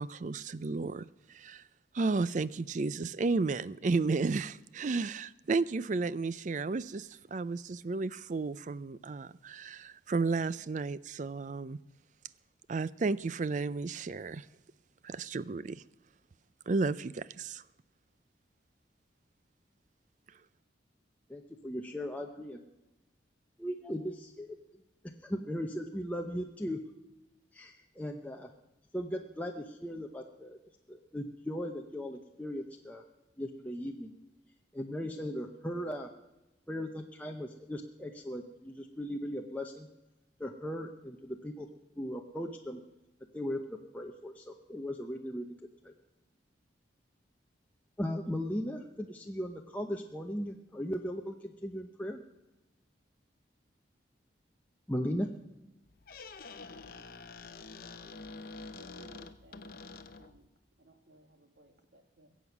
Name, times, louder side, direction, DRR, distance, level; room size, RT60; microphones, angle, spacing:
voice 1, 0.0-1.6 1.9-11.8 12.7-14.5 15.0-15.8 16.7-17.6, right 3 dB, 40° right, 19 dB, 0.4 m, -33 dB
voice 2, 21.3-22.6 23.6-24.6 25.2-26.8 27.5-28.5 28.9-30.6 30.9-33.0 33.4-34.1 34.7-36.1 36.7-39.9 40.4-41.7 42.0-42.8 43.3-45.5 45.8-45.9 48.0-52.2 54.9-55.3, equal, 10° left, 1 dB, 0.8 m, -37 dB
Squeak, 55.8-60.5, left 4 dB, 50° left, 0.8 m, -47 dB
voice 3, 58.8-60.5 60.8-62.3, equal, 60° right, 7 dB, 1.7 m, -60 dB
22.0 x 8.2 x 6.0 m, 0.98 s
head